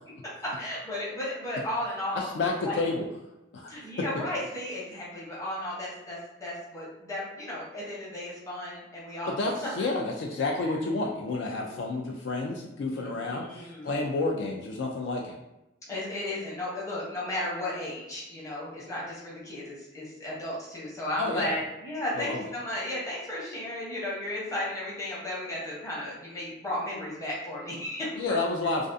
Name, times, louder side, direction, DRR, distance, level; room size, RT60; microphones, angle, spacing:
voice 1, 0.4-2.8 3.7-9.3 11.6-11.7 12.9-14.0 15.9-28.4, left 1 dB, 15° left, -6 dB, 0.8 m, -34 dB
voice 2, 2.1-3.1 3.5-3.7 9.3-15.4 21.2-21.6 22.1-22.4 28.2-28.9, left 3 dB, 65° left, 0 dB, 0.3 m, -30 dB
2.4 x 2.3 x 2.5 m, 0.94 s
head